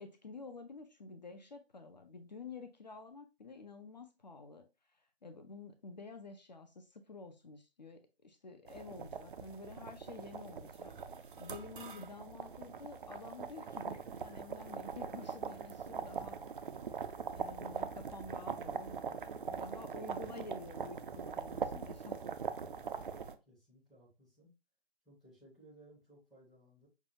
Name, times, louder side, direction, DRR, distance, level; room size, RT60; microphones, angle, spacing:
voice 1, 0.0-4.7 5.2-11.1 11.4-16.4 16.9-22.2, left 4 dB, 45° left, 7 dB, 0.5 m, -50 dB
sound 1, 8.7-23.4, right 6 dB, 55° right, 0.5 m, -42 dB
voice 2, 22.7-23.1 23.5-24.5 25.0-26.9, right 1 dB, ahead, -11 dB, 0.6 m, -61 dB
5.8 x 2.2 x 2.7 m, 0.28 s
figure-of-eight pair, 140°, 31 cm